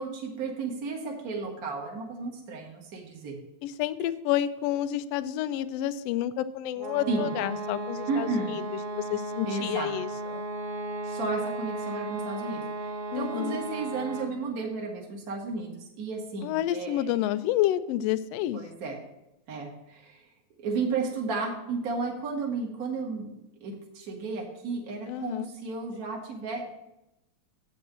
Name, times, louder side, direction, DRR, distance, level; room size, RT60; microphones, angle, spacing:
voice 1, 0.0-3.4 7.1-7.3 8.1-8.5 9.5-9.9 11.0-17.1 18.5-19.0 19.5-20.2 20.6-26.7, right 4 dB, 40° right, 0 dB, 1.6 m, -33 dB
voice 2, 3.6-8.6 8.9-10.4 13.1-13.6 16.4-18.6 25.1-25.5, left 12 dB, 85° left, 11 dB, 1.4 m, -29 dB
sound 1, 6.8-14.5, right 2 dB, 65° right, 1.7 m, -35 dB
8.3 x 5.3 x 7.2 m, 0.90 s
omnidirectional pair, 3.4 m